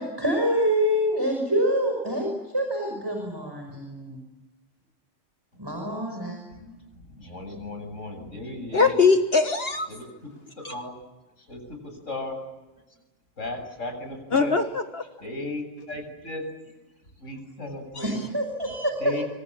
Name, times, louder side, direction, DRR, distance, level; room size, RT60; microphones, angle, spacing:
voice 1, 0.0-4.2 5.6-6.4 18.0-18.9, equal, 20° right, 2 dB, 5.9 m, -26 dB
voice 2, 5.5-5.9 6.5-9.0 9.9-10.3 10.6-11.0 11.4-12.4 13.4-14.5 15.2-16.4 17.2-18.2 19.0-19.2, left 2 dB, 90° left, 4 dB, 8.3 m, -36 dB
voice 3, 8.7-9.9 14.3-15.0 18.7-18.9, left 4 dB, 55° left, 6 dB, 1.7 m, -21 dB
27.5 x 26.0 x 7.6 m, 1.1 s
omnidirectional pair, 1.3 m